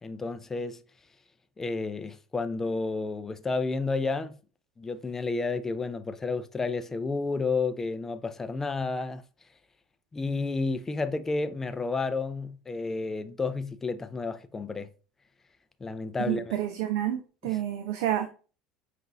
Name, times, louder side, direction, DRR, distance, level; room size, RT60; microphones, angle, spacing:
voice 1, 0.0-0.8 1.6-4.3 4.8-9.2 10.1-14.9 15.8-16.6 17.4-17.6, left 3 dB, 20° left, 0.4 m, -31 dB
voice 2, 16.3-18.3, right 12 dB, 65° right, 0.3 m, -29 dB
5.3 x 2.5 x 2.4 m
figure-of-eight pair, 70°, 2 cm